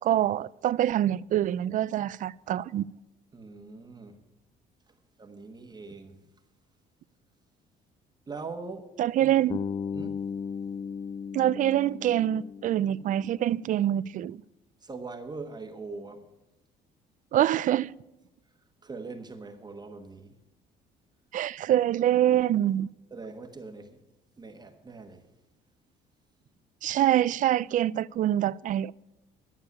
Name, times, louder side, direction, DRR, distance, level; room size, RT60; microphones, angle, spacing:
voice 1, 0.0-2.9 9.0-9.6 11.3-14.4 17.3-18.0 21.3-22.9 26.8-28.9, right 12 dB, 50° right, 0.4 m, -25 dB
voice 2, 3.3-4.2 4.9-6.2 8.3-8.9 9.2-9.3 9.9-10.2 14.8-16.3 18.8-20.4 23.1-24.0 24.4-25.3, right 3 dB, 25° right, 1.3 m, -42 dB
Bass guitar, 9.5-13.6, left 6 dB, 25° left, 0.3 m, -36 dB
12.0 x 6.7 x 9.6 m
cardioid pair, 110°, 17 cm